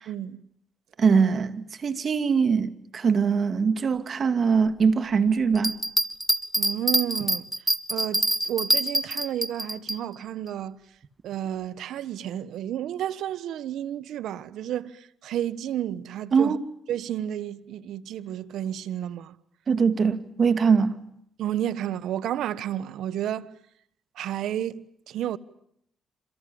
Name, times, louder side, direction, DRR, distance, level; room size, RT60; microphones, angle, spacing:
voice 1, 0.1-0.4 6.6-7.5 7.9-10.8 11.2-16.6 16.9-19.4 21.4-23.6 24.1-25.4, right 11 dB, 80° right, 1.3 m, -31 dB
voice 2, 1.0-5.8 16.3-16.6 19.7-20.9, right 5 dB, 45° right, 2.5 m, -22 dB
sound 1, 5.5-10.0, right 1 dB, 5° right, 1.8 m, -25 dB
29.0 x 27.0 x 7.2 m
cardioid pair, 90°, 0 cm